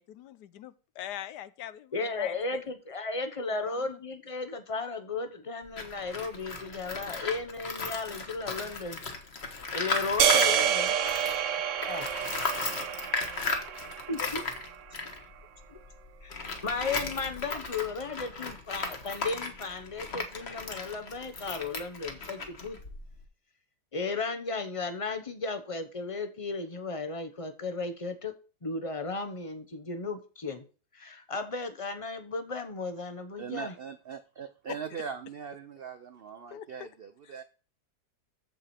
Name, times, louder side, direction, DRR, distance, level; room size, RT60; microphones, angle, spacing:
voice 1, 0.0-2.6 3.5-3.9 14.2-14.3 34.7-34.8 36.5-36.9 37.2-37.4, left 12 dB, 75° left, 15 dB, 1.2 m, -42 dB
voice 2, 1.9-9.0 9.7-10.9 11.8-12.1 14.1-14.4 15.7-15.8 16.2-22.8 23.9-28.3 28.6-30.6 30.9-33.7, left 3 dB, 25° left, 8 dB, 0.8 m, -35 dB
Tools, 5.7-11.5 11.8-23.2, left 3 dB, 40° left, 1.5 m, -36 dB
sound 1, 10.2-14.6, right 9 dB, 60° right, 0.9 m, -28 dB
voice 3, 33.4-37.4, right 7 dB, 85° right, 10 dB, 0.5 m, -40 dB
14.5 x 4.9 x 4.4 m, 0.36 s
omnidirectional pair, 1.8 m